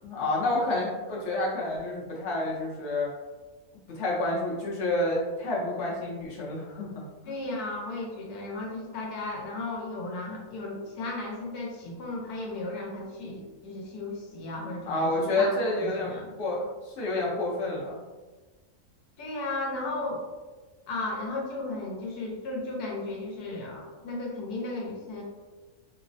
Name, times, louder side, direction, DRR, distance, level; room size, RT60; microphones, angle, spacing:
voice 1, 0.0-3.1 3.9-7.4 14.9-16.1 16.4-18.0, left 2 dB, 55° left, -4 dB, 0.9 m, -29 dB
voice 2, 7.2-16.2 19.2-20.2 20.9-25.2, left 2 dB, 85° left, -1 dB, 1.2 m, -35 dB
3.1 x 2.0 x 2.5 m, 1.3 s
omnidirectional pair, 1.6 m